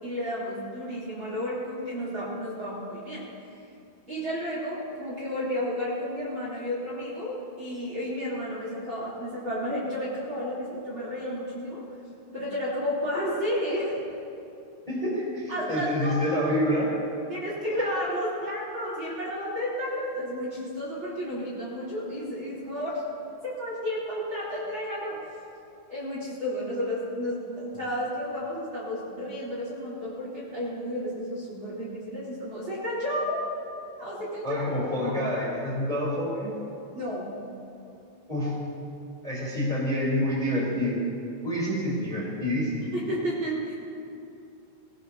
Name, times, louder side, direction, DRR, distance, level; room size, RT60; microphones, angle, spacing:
voice 1, 0.0-3.2 3.5-3.6 4.1-11.8 12.3-14.0 15.5-16.3 17.3-23.0 23.4-25.2 25.9-33.4 34.0-34.6 35.0-35.1 36.9-37.4 42.9-43.8, equal, 30° right, -6 dB, 3.8 m, -32 dB
voice 2, 14.9-16.9 17.6-17.9 34.4-36.6 38.3-38.6 39.2-41.0 41.4-42.9, equal, 10° left, -6 dB, 3.2 m, -27 dB
24.0 x 18.0 x 2.9 m, 2.6 s
omnidirectional pair, 5.0 m